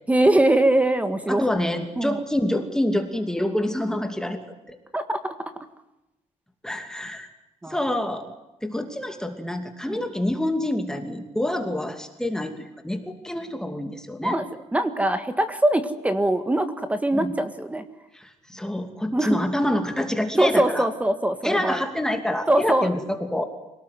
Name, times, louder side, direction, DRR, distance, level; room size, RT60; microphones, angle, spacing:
voice 1, 0.1-1.5 2.0-2.2 4.9-5.3 7.6-7.8 9.8-10.0 14.2-14.5 14.7-17.8 19.1-19.4 20.4-21.9 22.5-22.9, right 1 dB, 10° right, 10 dB, 1.8 m, -22 dB
voice 2, 1.3-4.4 4.7-4.8 6.6-7.3 7.7-8.2 8.6-14.4 17.1-17.3 18.1-20.9 21.4-23.4, left 1 dB, 5° left, 6 dB, 2.7 m, -27 dB
27.5 x 18.5 x 9.4 m, 0.98 s
cardioid pair, 125°, 13 cm